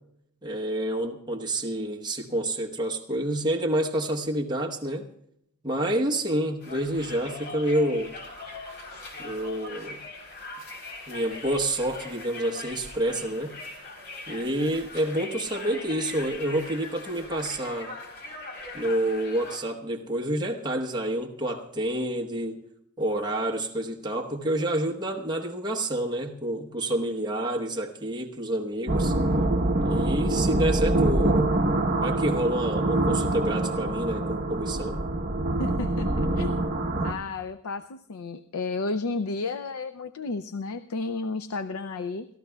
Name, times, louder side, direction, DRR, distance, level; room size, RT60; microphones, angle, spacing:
voice 1, 0.4-5.1 5.6-8.1 9.2-10.0 11.1-13.6 14.3-17.9 18.7-22.6 23.0-29.1 29.8-31.5 32.0-35.0, right 1 dB, 20° right, -1 dB, 1.0 m, -28 dB
Conversation, 6.6-19.6, left 2 dB, 55° left, 3.6 m, -41 dB
sound 1, 28.9-37.1, right 2 dB, 45° right, 1.0 m, -25 dB
voice 2, 35.6-42.3, left 3 dB, 75° left, 12 dB, 0.5 m, -32 dB
29.5 x 13.5 x 2.3 m, 0.76 s
head